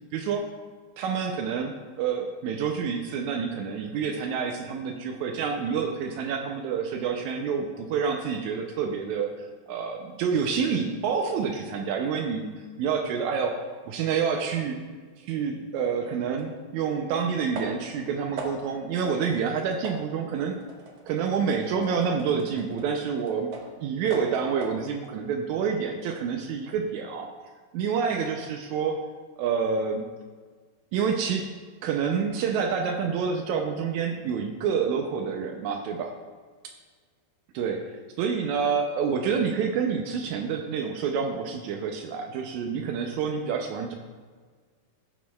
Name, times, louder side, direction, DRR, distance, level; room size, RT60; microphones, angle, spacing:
voice 1, 0.1-0.5 1.0-14.8 15.2-20.6 21.1-23.5 23.8-27.3 27.7-29.0 29.4-30.1 30.9-31.5 31.8-36.2 37.5-43.9, right 6 dB, 85° right, 3 dB, 1.6 m, -28 dB
sound 1, 16.4-16.5 17.5-18.0 18.4-18.8 19.2-19.5 19.8-23.8 24.1-24.9, right 3 dB, 65° right, 2.1 m, -40 dB
15.5 x 6.3 x 2.3 m, 1.5 s
omnidirectional pair, 4.0 m